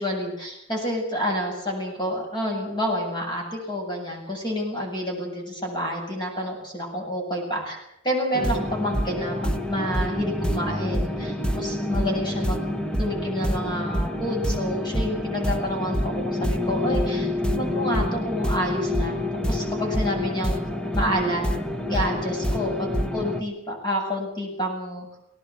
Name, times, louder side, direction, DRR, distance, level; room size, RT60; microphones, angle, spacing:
voice 1, 0.0-12.6 13.0-19.2 19.5-20.6 20.9-21.4 21.9-25.1, equal, 20° left, 0 dB, 8.0 m, -29 dB
sound 1, 8.3-23.4, left 1 dB, 5° left, 1.4 m, -27 dB
19.5 x 19.0 x 8.6 m, 0.83 s
head